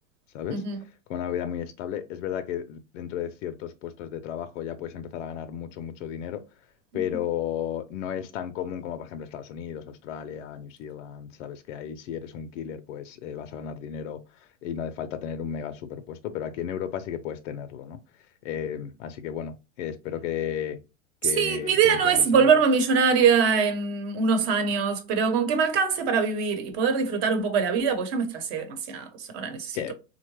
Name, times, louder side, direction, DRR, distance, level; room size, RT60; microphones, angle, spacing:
voice 1, 1.1-6.4 6.9-18.0 18.4-20.8 21.2-22.6 29.7-29.9, left 9 dB, 70° left, 0.5 m, -34 dB
voice 2, 21.3-29.8, right 6 dB, 50° right, 1.0 m, -23 dB
3.7 x 2.2 x 3.0 m
supercardioid pair, 135°, 38 cm